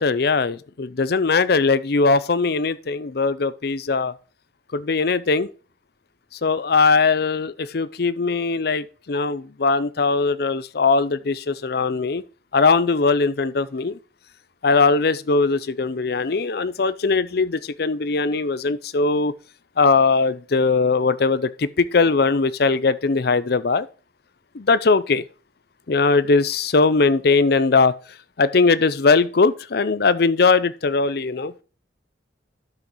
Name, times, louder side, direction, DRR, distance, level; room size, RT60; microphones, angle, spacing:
voice 1, 0.0-4.1 4.7-5.5 6.3-12.2 12.5-14.0 14.6-19.3 19.8-23.9 24.5-25.2 25.9-27.9 28.4-31.5, left 4 dB, 60° left, 0.6 m, -20 dB
12.0 x 5.8 x 3.1 m
head